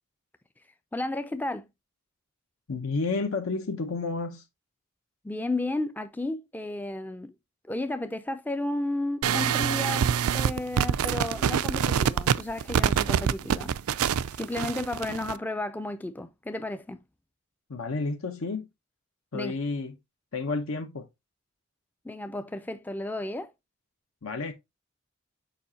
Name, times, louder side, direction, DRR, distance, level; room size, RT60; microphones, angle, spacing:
voice 1, 0.9-1.7 5.2-7.3 7.7-13.8 14.3-17.0 19.3-19.6 22.0-23.5, left 2 dB, 10° left, 0.4 m, -33 dB
voice 2, 2.7-4.4 17.7-18.7 19.3-19.9 20.3-21.1 24.2-24.5, left 3 dB, 75° left, 0.8 m, -31 dB
sound 1, 9.2-15.4, right 8 dB, 90° right, 0.4 m, -25 dB
7.0 x 4.9 x 2.7 m
head